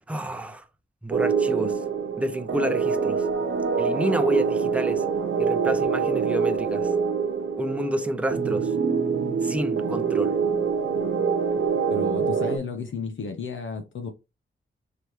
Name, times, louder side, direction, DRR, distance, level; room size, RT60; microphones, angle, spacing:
voice 1, 0.1-0.6 1.0-1.7 2.2-3.2 3.8-5.0 5.4-6.9 7.6-8.7 9.4-10.4, right 1 dB, 5° right, 0.7 m, -29 dB
sound 1, 1.1-12.6, right 5 dB, 70° right, 0.9 m, -25 dB
voice 2, 11.9-14.1, left 5 dB, 70° left, 0.7 m, -33 dB
4.6 x 3.3 x 3.0 m
wide cardioid pair, 80°, 21 cm